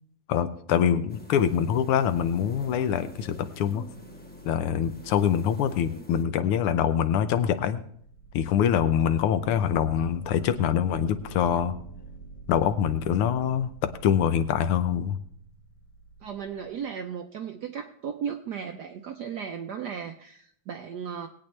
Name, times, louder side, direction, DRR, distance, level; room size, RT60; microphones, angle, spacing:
voice 1, 0.3-3.8 4.4-7.8 8.3-11.7 12.5-13.7 14.0-15.2, left 9 dB, 80° left, 10 dB, 1.6 m, -24 dB
sound 1, 1.1-6.2, equal, 10° left, 0.5 m, -49 dB
sound 2, 2.0-6.2 7.2-7.3 7.7-16.8, right 2 dB, 60° left, 3.0 m, -47 dB
voice 2, 16.2-21.3, right 7 dB, 75° right, 6 dB, 0.9 m, -35 dB
20.5 x 8.7 x 3.2 m, 0.65 s
omnidirectional pair, 2.4 m